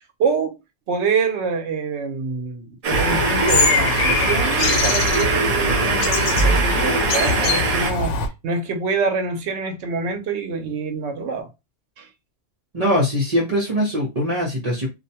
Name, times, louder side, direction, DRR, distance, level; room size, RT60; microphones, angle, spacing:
voice 1, 0.2-0.6 0.9-6.2 6.4-8.2 8.4-11.5 12.0-12.1, right 5 dB, 75° right, 0.9 m, -25 dB
sound 1, 2.8-7.9, right 5 dB, 60° right, 0.4 m, -22 dB
sound 2, 2.9-8.3, left 4 dB, 90° left, 0.9 m, -22 dB
sound 3, 6.4-7.3, right 2 dB, 50° left, 0.7 m, -23 dB
voice 2, 12.7-14.9, equal, 40° right, 0.8 m, -21 dB
2.5 x 2.1 x 2.8 m
omnidirectional pair, 1.2 m